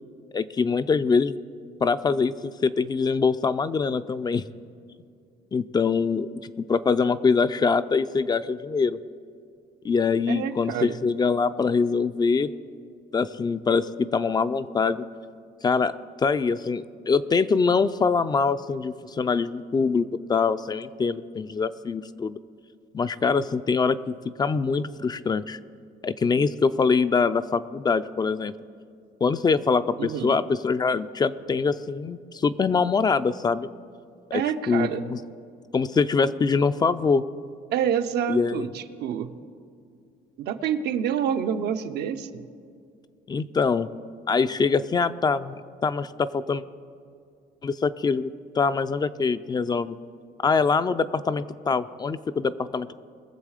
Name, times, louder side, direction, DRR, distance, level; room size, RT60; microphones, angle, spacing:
voice 1, 0.3-1.4 1.8-4.4 5.5-9.0 9.8-12.5 13.1-15.0 15.6-22.4 22.9-25.6 26.0-28.5 29.2-33.7 34.7-35.2 35.7-37.2 38.3-38.7 43.3-43.9 44.3-46.6 47.6-48.3 48.6-50.0 50.4-52.9, left 5 dB, 25° left, 13 dB, 0.4 m, -24 dB
voice 2, 10.3-11.0 30.0-30.4 34.3-35.0 37.7-39.3 40.4-42.3, right 9 dB, 75° right, 8 dB, 0.7 m, -27 dB
21.5 x 7.2 x 4.9 m, 2.3 s
cardioid pair, 110°, 17 cm